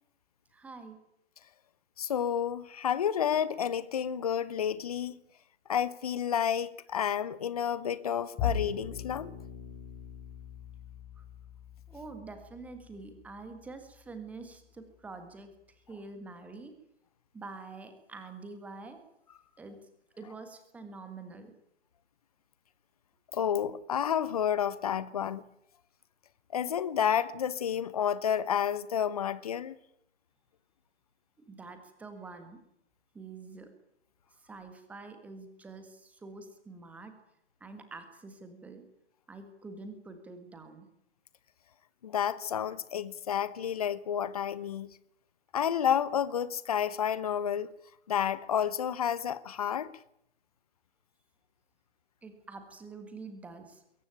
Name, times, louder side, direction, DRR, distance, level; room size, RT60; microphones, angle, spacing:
voice 1, 0.5-1.0 11.2-11.3 11.9-16.7 17.3-19.0 19.6-19.8 20.2-21.5 31.5-32.6 33.1-33.7 34.4-37.1 37.6-38.8 39.3-40.9 52.2-53.8, right 3 dB, 5° right, 1.6 m, -46 dB
voice 2, 2.0-5.2 5.7-9.3 23.3-25.4 26.5-29.7 42.0-44.9 45.5-47.7 48.1-49.9, left 8 dB, 35° left, 1.0 m, -30 dB
Bowed string instrument, 8.4-14.8, left 7 dB, 15° left, 5.7 m, -40 dB
22.0 x 17.5 x 9.0 m
figure-of-eight pair, 145°, 35 cm